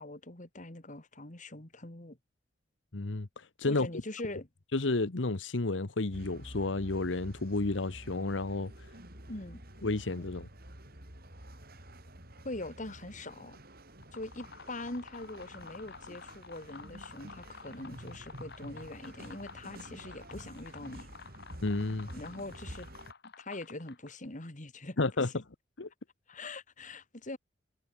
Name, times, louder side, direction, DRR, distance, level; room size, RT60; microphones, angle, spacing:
voice 1, 0.0-2.2 3.7-4.5 9.3-9.6 12.4-13.6 14.1-21.1 22.1-22.9 23.2-25.3 26.3-27.4, left 2 dB, 45° left, 2.9 m, -43 dB
voice 2, 2.9-3.9 4.7-8.7 9.8-10.5 21.6-22.1 25.0-25.3 25.8-25.9, left 2 dB, 85° left, 1.1 m, -31 dB
sound 1, 6.1-23.1, right 1 dB, 55° right, 7.4 m, -50 dB
sound 2, 13.9-24.3, left 5 dB, 60° left, 2.1 m, -51 dB
head